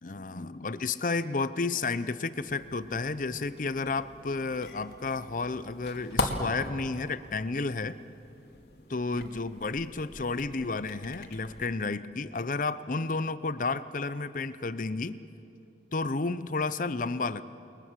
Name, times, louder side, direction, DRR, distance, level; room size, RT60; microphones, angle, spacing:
voice 1, 0.0-8.0 8.9-15.2 15.9-17.4, left 3 dB, 50° left, 14 dB, 0.7 m, -31 dB
sound 1, 2.5-11.7, left 2 dB, 70° left, 2.3 m, -40 dB
29.0 x 22.0 x 7.6 m, 2.8 s
head